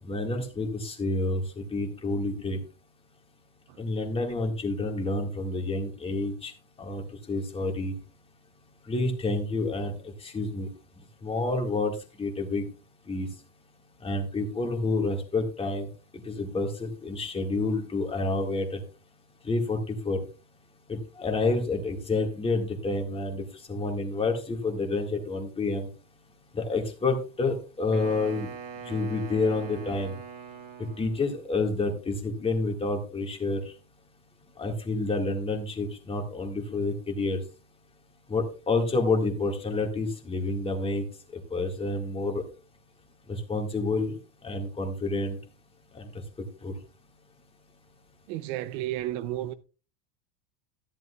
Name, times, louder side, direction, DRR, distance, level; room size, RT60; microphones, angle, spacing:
voice 1, 0.0-2.6 3.8-6.5 6.8-7.9 8.9-9.9 10.2-10.7 11.2-12.7 13.1-13.3 14.0-15.9 16.2-18.8 19.4-20.2 20.9-25.9 26.5-28.5 28.8-30.1 31.0-33.7 34.6-37.4 38.3-41.0 41.5-42.4 43.3-44.2 44.4-45.4 45.9-46.1 46.6-46.7, left 3 dB, 15° left, 1.8 m, -29 dB
Wind instrument woodwind instrument, 27.9-31.4, right 6 dB, 35° right, 1.5 m, -42 dB
voice 2, 48.3-49.5, right 14 dB, 55° right, 0.7 m, -32 dB
13.5 x 10.5 x 2.3 m
cardioid pair, 165°, 40 cm